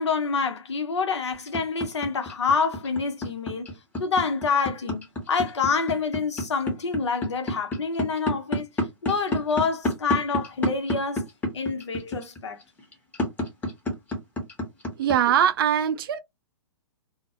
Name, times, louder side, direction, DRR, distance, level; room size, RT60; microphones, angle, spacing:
voice 1, 0.0-3.7 4.0-8.7 9.0-11.3 11.5-12.6, left 5 dB, 80° left, 0.7 m, -27 dB
sound 1, 1.3-15.2, left 1 dB, 10° left, 0.8 m, -28 dB
voice 2, 15.0-16.2, right 9 dB, 55° right, 0.4 m, -22 dB
2.1 x 2.0 x 2.8 m
hypercardioid pair, 120°, 15 cm